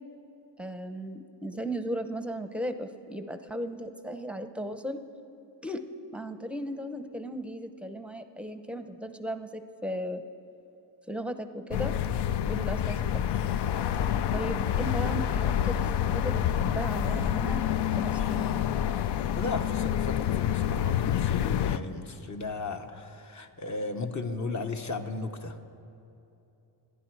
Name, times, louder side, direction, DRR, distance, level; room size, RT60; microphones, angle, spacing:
voice 1, 0.6-5.0 5.6-5.9 6.1-10.2 11.1-12.0 12.5-13.2 14.3-17.6 18.0-18.6, equal, 5° right, 8 dB, 0.7 m, -36 dB
sound 1, 11.7-21.8, left 10 dB, 65° left, 0.6 m, -28 dB
voice 2, 19.4-25.6, left 3 dB, 40° left, 6 dB, 1.1 m, -35 dB
27.0 x 10.5 x 4.7 m, 2.8 s
cardioid pair, 130°, 45 cm